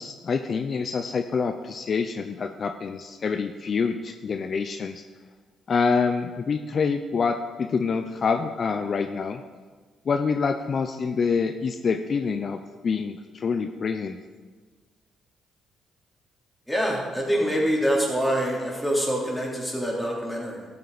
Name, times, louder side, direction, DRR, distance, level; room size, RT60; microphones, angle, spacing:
voice 1, 0.0-5.0 5.7-9.4 10.1-14.2, left 5 dB, 45° left, 7 dB, 0.5 m, -26 dB
voice 2, 16.7-20.7, equal, ahead, -4 dB, 3.4 m, -25 dB
14.0 x 8.6 x 4.0 m, 1.4 s
cardioid pair, 90°, 0 cm